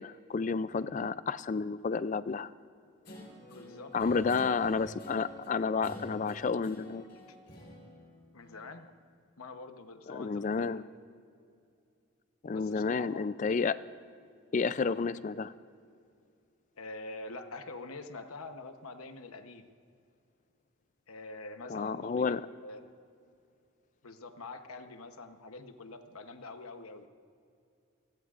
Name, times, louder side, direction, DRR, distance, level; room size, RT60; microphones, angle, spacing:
voice 1, 0.0-2.5 3.9-7.1 10.1-10.8 12.4-13.8 14.5-15.5 21.7-22.5, left 5 dB, 35° left, 15 dB, 0.3 m, -31 dB
Guitar, 3.0-8.9, equal, 50° left, 4.4 m, -48 dB
voice 2, 3.5-4.3 7.3-7.4 8.3-8.9 9.4-10.8 12.5-13.3 16.8-19.7 21.1-22.8 24.0-27.1, left 3 dB, 85° left, 7 dB, 1.0 m, -45 dB
28.0 x 19.5 x 2.5 m, 2.4 s
head